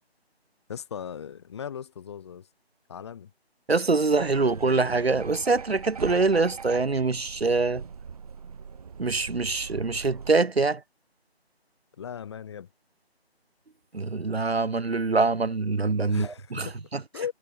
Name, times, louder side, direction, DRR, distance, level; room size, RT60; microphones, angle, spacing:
voice 1, 0.7-2.5 2.9-3.3 12.0-12.7 16.1-16.8 17.1-17.3, left 8 dB, 25° left, 3.9 m, -37 dB
voice 2, 3.7-7.8 9.0-10.8 13.9-17.0, right 3 dB, 70° right, 2.8 m, -24 dB
sound 1, 4.1-10.3, right 6 dB, 35° right, 4.9 m, -41 dB
figure-of-eight pair, 165°, 32 cm